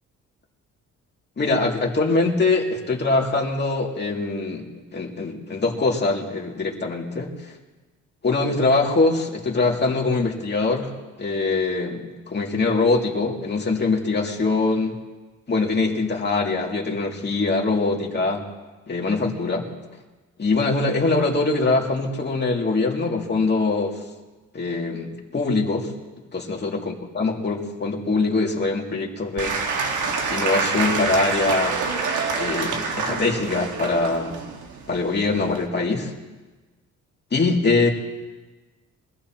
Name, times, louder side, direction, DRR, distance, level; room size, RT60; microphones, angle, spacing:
voice 1, 1.4-4.7 4.9-7.3 8.2-10.9 11.2-14.9 15.5-18.4 18.9-19.7 20.4-24.0 24.5-25.9 26.3-29.5 30.3-31.8 32.4-34.4 34.9-36.1 37.3-37.9, left 3 dB, 35° left, -1 dB, 2.6 m, -23 dB
Applause / Crowd, 29.4-35.7, right 4 dB, 75° right, 1.8 m, -26 dB
23.5 x 15.0 x 3.0 m, 1.2 s
cardioid pair, 90°, 30 cm